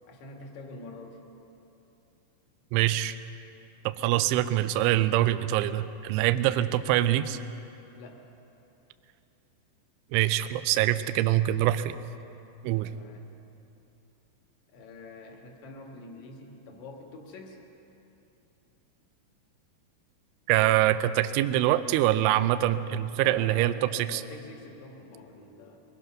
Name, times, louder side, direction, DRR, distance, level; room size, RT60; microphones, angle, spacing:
voice 1, 0.0-1.2 6.4-6.7 7.9-8.3 12.8-13.3 14.7-17.6 23.1-25.8, left 2 dB, 55° left, 1 dB, 2.3 m, -46 dB
voice 2, 2.7-3.2 3.9-7.4 10.1-12.0 12.6-12.9 20.5-24.2, right 14 dB, 85° right, 12 dB, 2.9 m, -24 dB
23.5 x 19.0 x 6.1 m, 2.9 s
omnidirectional pair, 5.8 m